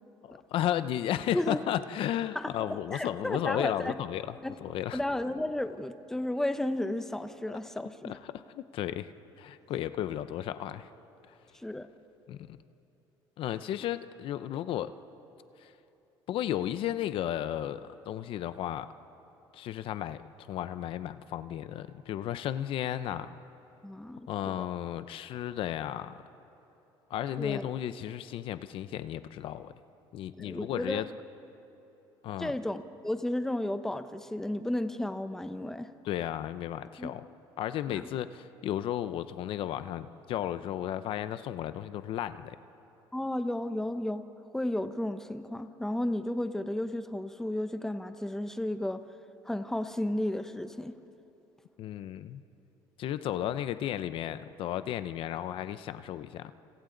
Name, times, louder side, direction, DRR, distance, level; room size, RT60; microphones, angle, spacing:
voice 1, 0.2-5.0 7.5-7.6 8.0-9.1 9.4-10.9 12.3-12.6 13.4-14.9 15.6-15.7 16.3-18.9 19.5-20.2 20.5-23.3 24.3-26.2 27.1-29.7 30.1-31.0 32.2-32.5 36.1-37.3 37.6-42.6 51.8-52.4 53.0-56.5, left 11 dB, 65° left, 12 dB, 0.7 m, -34 dB
voice 2, 2.3-3.9 4.4-4.6 4.9-8.1 11.5-11.9 23.8-24.6 27.4-27.7 30.4-31.1 32.4-35.9 37.0-37.1 37.9-38.1 43.1-44.2 44.5-49.0 49.4-50.9, left 1 dB, 5° left, 9 dB, 0.9 m, -33 dB
29.5 x 28.0 x 3.9 m, 2.9 s
cardioid pair, 115°, 10 cm